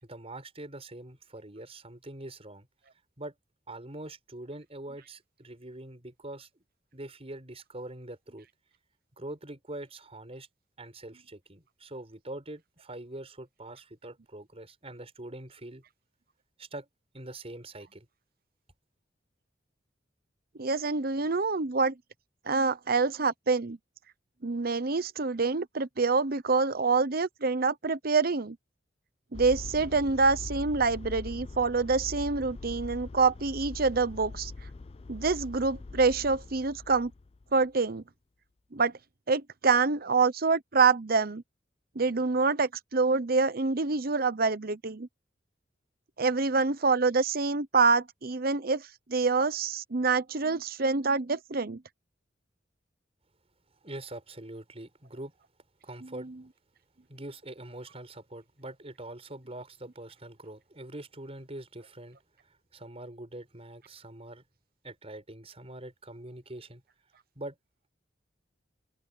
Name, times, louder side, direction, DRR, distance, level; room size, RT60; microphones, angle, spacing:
voice 1, 0.0-2.7 3.2-3.3 3.7-6.5 6.9-8.5 9.2-10.5 10.8-15.8 16.6-16.9 17.1-18.1 53.8-55.4 55.8-56.3 57.1-62.2 62.4-64.4 64.8-66.8 67.4-67.6, right 1 dB, 35° right, 5.8 m, -43 dB
voice 2, 20.6-21.9 22.5-23.8 24.4-28.6 29.3-34.5 35.1-37.1 37.5-38.0 38.7-38.9 39.3-41.4 41.9-45.1 46.2-51.8, right 4 dB, 55° right, 1.0 m, -26 dB
sound 1, 29.3-37.7, left 3 dB, 35° left, 0.4 m, -42 dB
head